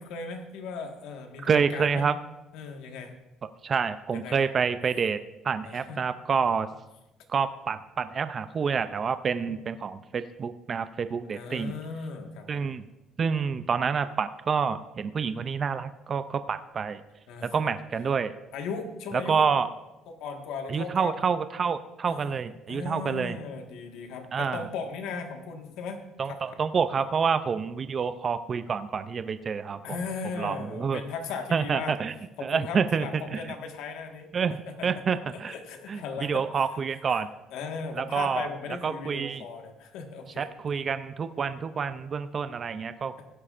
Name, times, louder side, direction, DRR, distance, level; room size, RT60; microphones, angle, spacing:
voice 1, 0.0-2.1 2.5-3.1 4.1-4.4 5.6-6.0 9.5-9.6 11.2-12.7 17.3-17.7 18.5-19.5 20.1-21.2 22.0-26.0 29.8-32.0 32.4-34.3 34.7-36.7 37.1-37.2 37.5-40.5, left 5 dB, 80° left, 4 dB, 1.5 m, -37 dB
voice 2, 1.4-2.1 3.6-5.2 5.4-6.7 7.3-11.7 12.5-12.8 13.2-17.0 17.4-18.3 19.3-19.7 20.7-23.4 24.3-24.6 26.2-30.0 30.3-31.0 31.5-32.1 32.4-33.1 33.3-33.4 34.3-34.6 34.8-35.5 35.9-37.3 38.0-38.5 38.8-39.4 40.4-43.2, right 6 dB, 30° right, 11 dB, 0.4 m, -28 dB
15.5 x 11.0 x 2.5 m, 0.96 s
cardioid pair, 155°, 0 cm